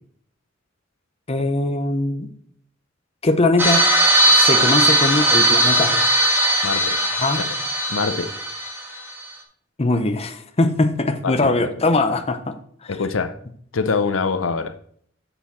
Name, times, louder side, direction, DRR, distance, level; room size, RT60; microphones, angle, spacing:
voice 1, 1.3-2.3 3.2-3.9 4.2-6.1 7.2-7.5 9.8-12.6 12.8-13.0, left 2 dB, 30° left, 7 dB, 0.8 m, -21 dB
sound 1, 3.6-9.1, right 1 dB, 10° right, 1.6 m, -18 dB
voice 2, 6.6-7.0 7.4-7.5 7.9-8.3 11.2-11.5 12.9-13.4 13.7-14.8, left 4 dB, 80° left, 10 dB, 0.7 m, -24 dB
7.5 x 7.0 x 4.3 m, 0.62 s
head